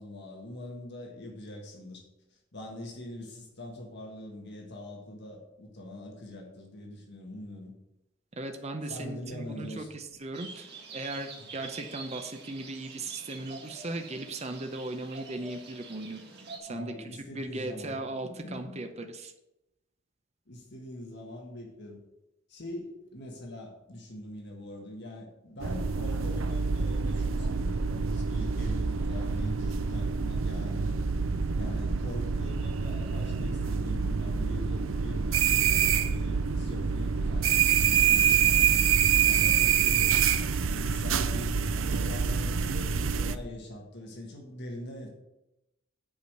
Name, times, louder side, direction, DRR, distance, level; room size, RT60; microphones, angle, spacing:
voice 1, 0.0-2.0 2.3-7.7 8.8-9.9 16.7-18.0 18.2-18.8 20.5-22.0 22.5-31.0 31.5-38.9 39.2-40.2 40.7-45.1, left 1 dB, 55° left, 0 dB, 1.6 m, -43 dB
voice 2, 8.4-16.2 16.6-19.3, right 2 dB, 30° right, 6 dB, 0.7 m, -37 dB
sound 1, 10.3-16.6, right 4 dB, 55° right, 1.7 m, -46 dB
sound 2, 25.6-43.4, right 6 dB, 75° right, 0.5 m, -26 dB
8.1 x 4.9 x 6.7 m, 0.91 s
head